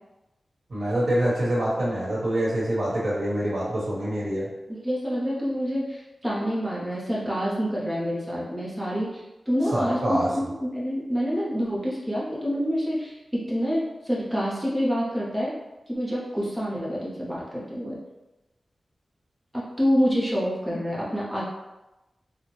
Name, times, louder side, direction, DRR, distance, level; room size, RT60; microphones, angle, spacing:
voice 1, 0.7-4.5 9.7-10.3, right 1 dB, 60° right, -6 dB, 1.4 m, -25 dB
voice 2, 4.7-15.5 15.9-18.0 19.5-21.4, equal, 5° right, -7 dB, 0.8 m, -27 dB
4.1 x 2.2 x 3.2 m, 1.0 s
wide cardioid pair, 125°, 0 cm